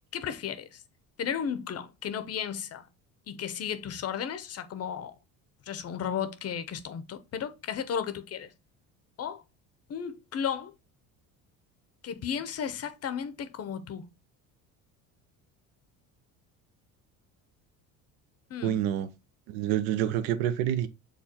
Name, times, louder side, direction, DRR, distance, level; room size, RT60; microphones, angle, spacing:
voice 1, 0.1-0.8 1.2-2.8 3.3-5.1 5.7-8.5 9.2-9.4 9.9-10.7 12.0-14.1 18.5-18.8, left 8 dB, 40° left, 0.6 m, -34 dB
voice 2, 18.6-19.1 19.5-20.9, right 11 dB, 90° right, 0.6 m, -27 dB
6.5 x 2.3 x 2.8 m
supercardioid pair, 90°, 40 cm